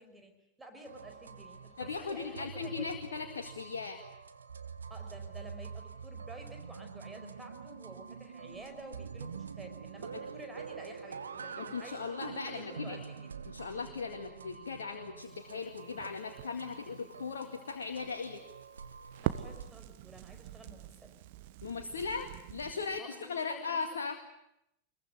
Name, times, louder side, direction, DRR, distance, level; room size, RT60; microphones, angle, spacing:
voice 1, 0.0-3.0 4.9-12.0 12.4-13.4 19.2-21.2 23.0-23.8, right 1 dB, 10° right, 5 dB, 5.3 m, -51 dB
sound 1, 0.9-19.7, right 6 dB, 70° right, 1.2 m, -46 dB
voice 2, 1.8-4.0 10.1-10.2 11.6-13.0 13.5-18.4 21.6-24.2, left 5 dB, 65° left, 4 dB, 2.1 m, -38 dB
Crackle, 15.2-23.0, right 15 dB, 50° right, 1.2 m, -44 dB
25.0 x 22.0 x 9.6 m, 0.81 s
figure-of-eight pair, 90°, 0 cm